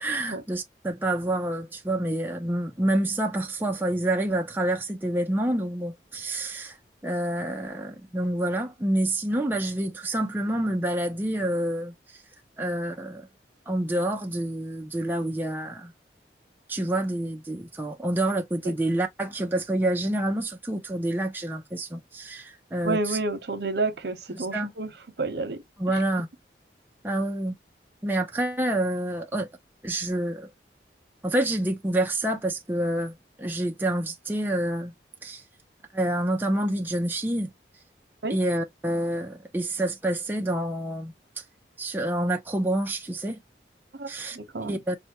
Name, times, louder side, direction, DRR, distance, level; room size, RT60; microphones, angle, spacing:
voice 1, 0.0-6.8 7.0-12.2 12.6-13.3 13.7-15.9 16.7-23.2 24.3-24.7 25.8-26.3 27.0-27.6 28.0-29.5 29.8-30.5 31.2-34.9 35.2-35.4 35.9-37.5 38.3-41.4 41.8-43.4 44.1-44.4 44.6-45.0, right 1 dB, 10° right, 0.4 m, -28 dB
voice 2, 22.8-24.9 25.2-25.6 25.9-26.0 38.2-38.4 44.0-44.8, right 3 dB, 70° right, 0.9 m, -30 dB
5.4 x 2.2 x 2.8 m
head